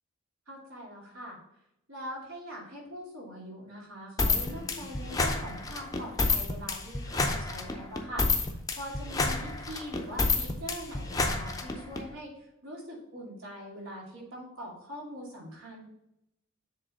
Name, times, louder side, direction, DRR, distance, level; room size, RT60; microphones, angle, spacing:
voice 1, 0.5-1.4 1.9-8.3 8.8-12.3 12.6-15.8, equal, 75° right, -3 dB, 2.5 m, -42 dB
sound 1, 4.2-12.0, left 3 dB, 15° left, 0.6 m, -29 dB
7.5 x 3.5 x 4.4 m, 0.82 s
head